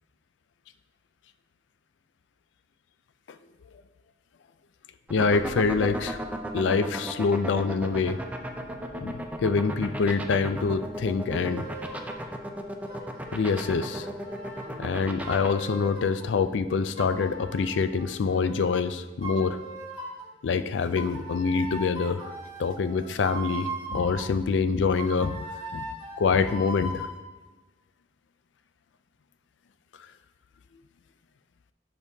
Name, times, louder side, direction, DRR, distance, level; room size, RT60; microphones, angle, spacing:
voice 1, 5.1-6.2 6.5-8.2 9.0-11.7 13.3-14.1 14.8-19.6 20.4-22.3 22.6-25.4 25.7-25.8 26.2-27.1, left 5 dB, 80° left, 11 dB, 0.4 m, -25 dB
sound 1, 5.1-15.5, right 1 dB, 10° right, 0.5 m, -34 dB
sound 2, 11.3-12.3 12.9-16.3 17.0-18.8 19.2-20.3 21.0-24.3 25.0-27.2, right 1 dB, 35° right, 2.4 m, -39 dB
10.5 x 5.4 x 2.8 m, 1.2 s
head